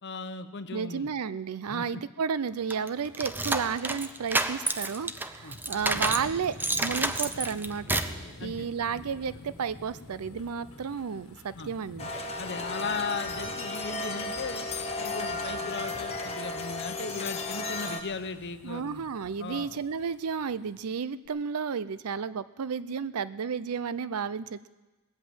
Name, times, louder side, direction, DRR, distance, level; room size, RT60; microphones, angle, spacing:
voice 1, 0.0-1.1 1.7-2.0 5.4-5.6 8.4-8.7 11.5-11.7 12.4-14.7 15.0-19.0 19.4-19.8, left 5 dB, 55° left, 11 dB, 0.8 m, -37 dB
voice 2, 0.7-8.0 8.4-12.1 18.6-24.7, right 6 dB, 85° right, 16 dB, 0.5 m, -32 dB
sound 1, 2.7-20.8 21.2-21.3, left 1 dB, 75° left, 1.4 m, -49 dB
sound 2, 2.7-6.3 6.6-8.2, right 2 dB, 10° right, 0.5 m, -29 dB
sound 3, 12.0-18.0, left 2 dB, 30° left, 1.1 m, -34 dB
18.5 x 8.1 x 7.9 m, 1.1 s
head